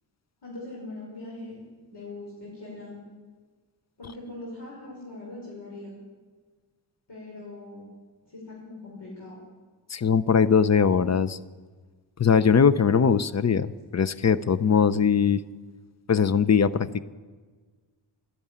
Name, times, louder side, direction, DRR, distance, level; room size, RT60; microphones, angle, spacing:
voice 1, 0.4-1.6 1.9-3.0 4.0-6.0 7.1-7.9 8.3-9.4, left 2 dB, 65° left, -5 dB, 5.3 m, -41 dB
voice 2, 9.9-11.4 12.2-15.4 16.1-17.0, left 6 dB, 35° left, 15 dB, 0.6 m, -21 dB
12.5 x 10.5 x 9.9 m, 1.4 s
cardioid pair, 60°, 44 cm